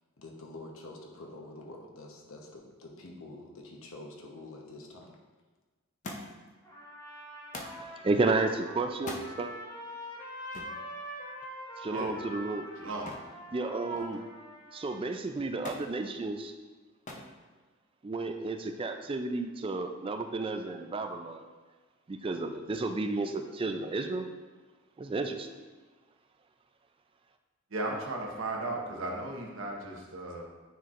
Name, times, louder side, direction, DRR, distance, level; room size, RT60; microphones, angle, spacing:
voice 1, 0.2-5.2, left 2 dB, 85° left, 0 dB, 1.0 m, -47 dB
Thump thud, 6.0-6.5 7.5-7.8 8.9-9.3 10.5-10.8 13.1-13.4 13.7-14.3 15.6-15.9 17.1-17.3 18.3-18.8 19.7-19.8, left 2 dB, 35° left, 0.6 m, -42 dB
Trumpet, 6.6-15.1, equal, 20° left, 2.0 m, -45 dB
voice 2, 7.8-9.5 11.8-12.7 13.5-14.2 14.7-16.5 18.0-21.4 22.1-24.3 25.0-25.5, right 3 dB, 25° right, 7 dB, 0.3 m, -32 dB
voice 3, 27.7-30.4, right 2 dB, 70° right, -1 dB, 1.0 m, -35 dB
9.4 x 4.2 x 2.5 m, 1.3 s
head